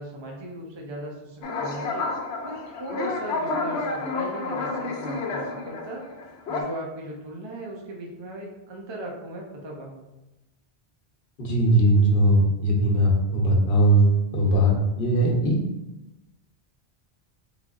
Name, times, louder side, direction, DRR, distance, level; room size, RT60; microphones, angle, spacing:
voice 1, 0.0-1.9 2.4-6.0 6.5-10.1, right 1 dB, 35° right, -1 dB, 0.5 m, -37 dB
sound 1, 1.4-6.6, left 3 dB, 85° left, 0.9 m, -30 dB
voice 2, 11.4-15.6, right 1 dB, 60° left, -1 dB, 1.0 m, -20 dB
3.6 x 3.3 x 2.3 m, 0.97 s
omnidirectional pair, 1.1 m